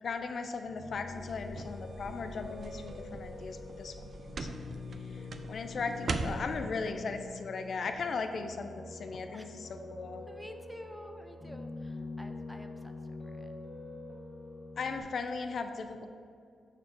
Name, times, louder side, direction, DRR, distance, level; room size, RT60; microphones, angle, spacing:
voice 1, 0.0-4.1 4.4-10.3 14.8-16.1, left 4 dB, 60° left, 7 dB, 0.5 m, -38 dB
Piano, 0.6-15.0, left 3 dB, 25° left, 1.6 m, -45 dB
sound 1, 1.1-6.6, right 3 dB, 50° right, 0.5 m, -41 dB
voice 2, 5.0-5.4 9.3-9.5 10.3-13.5, equal, ahead, 5 dB, 0.6 m, -50 dB
12.5 x 4.6 x 3.7 m, 2.3 s
cardioid pair, 105°, 0 cm